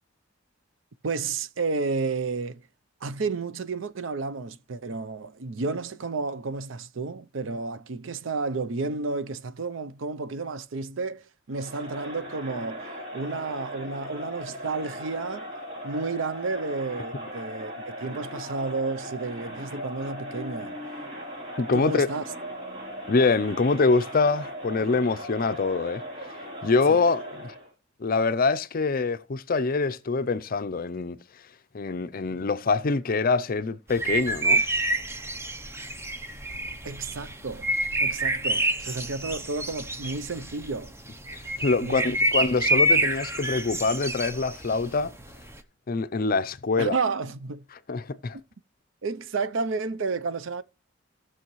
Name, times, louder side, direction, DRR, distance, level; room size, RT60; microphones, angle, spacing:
voice 1, 1.0-2.6 3.0-15.5 15.8-20.8 21.7-22.2 26.9-27.0 36.8-37.7 38.0-40.9 41.8-42.5 46.8-47.6 49.0-50.6, right 4 dB, 70° right, 0.6 m, -31 dB
Crowd, 11.5-27.7, equal, 40° right, 3.6 m, -38 dB
voice 2, 21.6-22.1 23.1-26.0 26.6-27.5 28.0-31.2 31.7-34.6 41.3-45.1 45.9-47.0 47.9-48.4, left 4 dB, 45° left, 0.5 m, -25 dB
sound 1, 33.9-45.6, right 2 dB, 15° right, 0.7 m, -27 dB
17.0 x 6.3 x 3.1 m
head